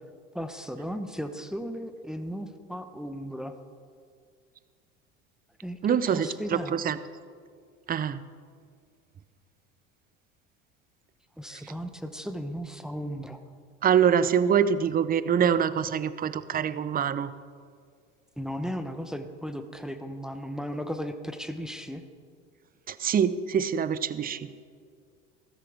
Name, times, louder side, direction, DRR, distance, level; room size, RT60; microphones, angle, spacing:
voice 1, 0.3-3.5 5.6-6.8 11.4-13.4 18.4-22.0, equal, ahead, 7 dB, 0.9 m, -36 dB
voice 2, 5.8-6.3 6.7-7.0 7.9-8.2 13.8-17.3 22.9-24.5, right 8 dB, 25° right, 15 dB, 0.6 m, -24 dB
15.0 x 13.5 x 3.5 m, 2.1 s
hypercardioid pair, 80°, 37 cm